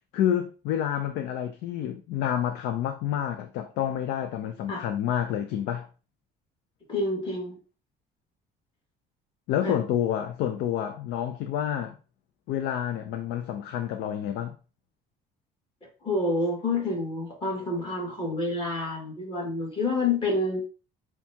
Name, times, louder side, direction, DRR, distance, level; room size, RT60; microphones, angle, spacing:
voice 1, 0.1-5.9 9.5-12.0 12.5-14.5, left 10 dB, 85° left, 0.5 m, -29 dB
voice 2, 6.9-7.6 9.6-9.8 15.8-20.6, left 2 dB, 30° left, 1.8 m, -28 dB
6.9 x 2.3 x 2.8 m
cardioid pair, 110°, 17 cm